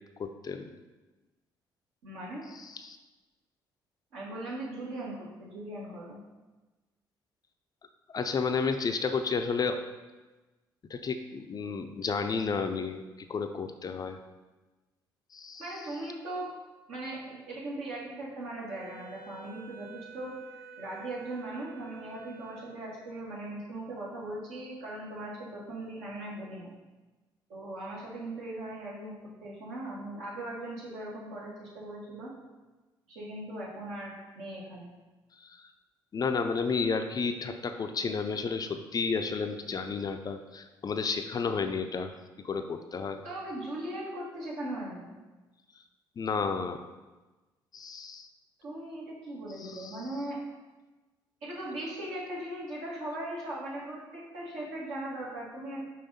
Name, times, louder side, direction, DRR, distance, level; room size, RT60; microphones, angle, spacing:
voice 1, 0.2-0.7 2.5-3.0 8.1-9.8 10.9-13.0 13.3-14.2 15.3-15.6 36.1-42.1 42.4-43.2 46.2-46.9 47.7-48.3 49.6-50.0, left 5 dB, 35° left, 7 dB, 0.5 m, -32 dB
voice 2, 2.0-2.4 4.1-6.2 15.6-16.5 16.9-26.7 27.5-29.1 29.4-32.3 33.1-34.9 43.2-45.1 48.6-50.4 51.4-55.9, right 1 dB, 65° right, -6 dB, 2.0 m, -39 dB
Wind instrument woodwind instrument, 18.7-23.2, right 5 dB, 90° right, 0.8 m, -50 dB
5.6 x 4.9 x 4.2 m, 1.2 s
figure-of-eight pair, 45°, 11 cm